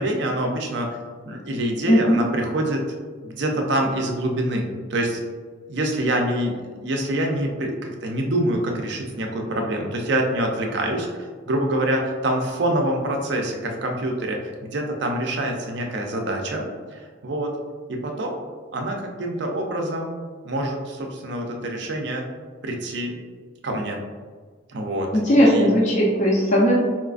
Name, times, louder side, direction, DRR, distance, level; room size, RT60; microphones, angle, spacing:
voice 1, 0.0-2.8 3.2-5.2 5.7-16.6 16.9-17.5 17.9-18.4 18.7-20.2 20.4-22.2 22.6-23.2 23.6-24.0 24.7-25.8, right 1 dB, 55° right, 2 dB, 0.5 m, -26 dB
voice 2, 1.9-2.2 25.2-26.7, equal, 35° left, -4 dB, 0.5 m, -17 dB
4.2 x 2.4 x 2.4 m, 1.5 s
head